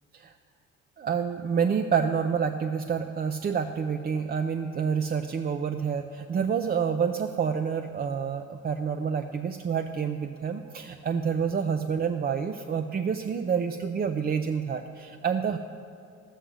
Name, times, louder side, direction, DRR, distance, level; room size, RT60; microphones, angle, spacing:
voice 1, 1.0-15.6, right 6 dB, 30° right, 7 dB, 0.5 m, -28 dB
12.0 x 8.2 x 6.3 m, 2.3 s
supercardioid pair, 90°, 30 cm